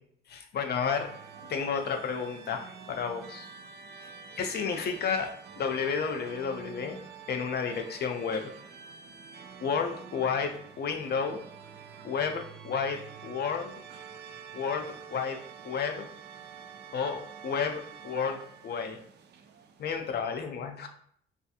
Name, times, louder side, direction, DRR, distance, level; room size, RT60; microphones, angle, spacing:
voice 1, 0.3-1.1 1.5-3.5 4.0-4.1 4.4-7.0 7.3-8.5 9.6-11.4 12.0-13.8 14.5-16.1 16.9-19.0 19.8-20.9, left 6 dB, 55° left, 5 dB, 0.5 m, -32 dB
sound 1, 0.8-20.3, right 6 dB, 55° right, 0.4 m, -48 dB
3.3 x 2.4 x 2.7 m, 0.62 s
cardioid pair, 90°, 20 cm